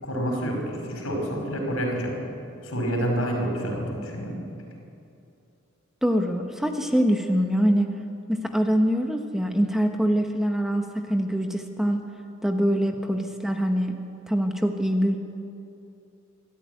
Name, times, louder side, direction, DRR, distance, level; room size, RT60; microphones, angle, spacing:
voice 1, 0.0-2.2 2.6-4.4, equal, 75° left, 1 dB, 5.4 m, -28 dB
voice 2, 6.0-7.9 8.3-12.0 12.4-14.0 14.3-15.2, equal, ahead, 4 dB, 1.0 m, -24 dB
24.0 x 14.0 x 9.4 m, 2.6 s
head